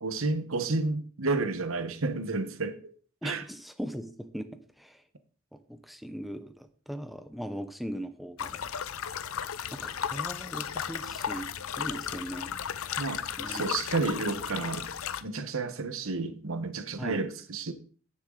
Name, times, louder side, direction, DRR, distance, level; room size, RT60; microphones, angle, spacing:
voice 1, 0.0-2.8 3.2-3.4 13.0-13.2 13.5-14.9 15.2-17.7, right 3 dB, 65° right, 1.0 m, -31 dB
voice 2, 3.2-4.5 4.8-5.0 5.7-8.6 9.7-11.5 11.8-12.5 13.4-13.7 17.0-17.2, equal, ahead, 0.8 m, -39 dB
sound 1, 8.4-15.2, left 8 dB, 70° left, 0.6 m, -35 dB
10.0 x 9.6 x 3.8 m
head